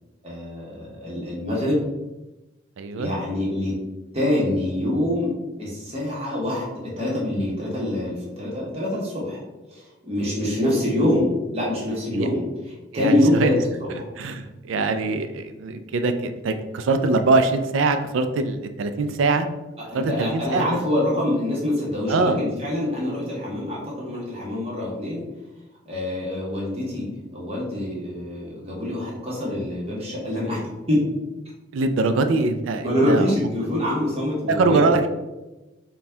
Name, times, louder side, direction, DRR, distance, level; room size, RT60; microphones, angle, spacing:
voice 1, 0.2-1.8 3.0-3.8 4.1-9.4 9.7-13.5 13.8-14.1 19.8-25.2 25.8-27.1 27.3-30.6 30.9-31.0 32.8-34.9, left 1 dB, 30° right, -5 dB, 1.1 m, -25 dB
voice 2, 2.8-3.1 12.1-12.3 12.9-13.5 14.2-19.5 19.9-20.7 22.1-22.4 31.7-33.3 34.5-35.1, right 3 dB, 75° right, 8 dB, 0.4 m, -22 dB
4.2 x 2.3 x 3.3 m, 1.1 s
head